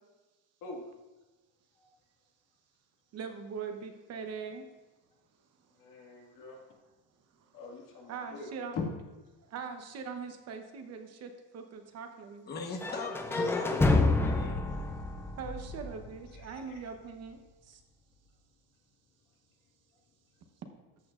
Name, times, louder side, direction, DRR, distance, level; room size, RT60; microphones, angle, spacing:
voice 1, 3.1-4.6 7.4-7.5 8.1-8.8 9.5-12.5 15.4-17.4 17.6-17.8, right 5 dB, 40° right, 5 dB, 1.0 m, -41 dB
voice 2, 5.8-6.6 7.5-8.8 16.3-16.8, left 4 dB, 55° left, 0 dB, 2.1 m, -43 dB
voice 3, 12.5-14.7, left 4 dB, 25° left, 3 dB, 1.1 m, -39 dB
sound 1, 12.8-16.7, left 2 dB, 5° left, 0.3 m, -29 dB
14.0 x 8.5 x 2.5 m, 1.2 s
cardioid pair, 160°, 38 cm